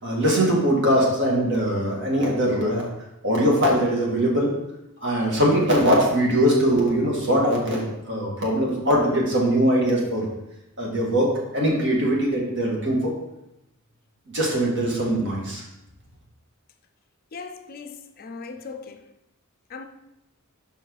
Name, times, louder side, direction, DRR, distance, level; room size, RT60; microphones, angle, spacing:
voice 1, 0.0-2.9 3.2-4.5 5.0-10.3 10.8-13.0 14.3-15.6, equal, 55° right, -3 dB, 1.8 m, -21 dB
voice 2, 17.3-19.1 19.7-19.9, left 4 dB, 45° left, 7 dB, 0.4 m, -38 dB
5.6 x 4.6 x 4.5 m, 0.88 s
head